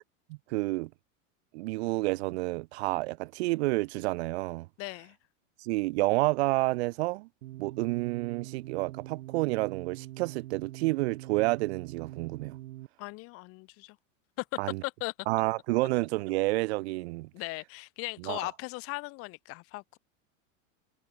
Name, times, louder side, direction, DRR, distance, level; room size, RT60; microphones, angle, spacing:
voice 1, 0.3-0.9 1.5-4.7 5.6-7.3 7.6-12.6 14.6-14.8 15.3-17.3 18.2-18.5, right 22 dB, 50° right, 2.0 m, -29 dB
voice 2, 4.8-5.2 13.0-14.0 14.4-14.5 14.8-15.1 17.3-20.0, left 24 dB, 35° left, 2.2 m, -38 dB
sound 1, 7.4-12.9, right 16 dB, 70° right, 4.2 m, -44 dB
supercardioid pair, 170°, 40 cm